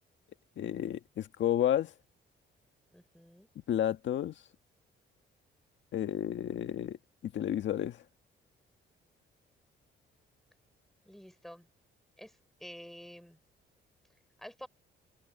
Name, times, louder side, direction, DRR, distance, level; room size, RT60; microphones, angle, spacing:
voice 1, 0.6-1.9 3.7-4.4 5.9-7.0 7.2-8.0, left 11 dB, 70° left, 1.7 m, -31 dB
voice 2, 2.9-3.5 11.0-11.7 12.2-12.3 12.6-13.4 14.4-14.7, equal, ahead, 5.1 m, -49 dB
cardioid pair, 90°, 20 cm